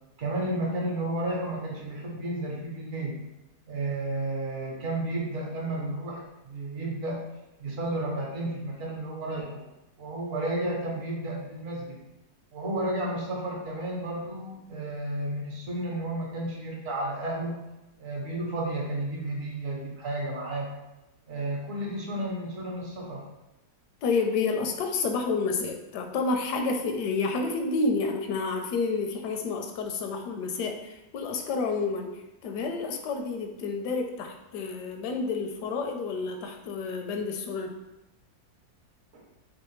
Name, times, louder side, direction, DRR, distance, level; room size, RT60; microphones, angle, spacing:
voice 1, 0.2-3.2 3.7-7.3 7.6-9.6 10.0-12.0 12.5-17.6 18.0-20.7 21.3-23.2 39.1-39.3, right 1 dB, 60° right, -2 dB, 1.1 m, -32 dB
voice 2, 24.0-37.8, left 4 dB, 80° left, 4 dB, 1.1 m, -29 dB
3.3 x 3.3 x 3.0 m, 0.97 s
omnidirectional pair, 1.7 m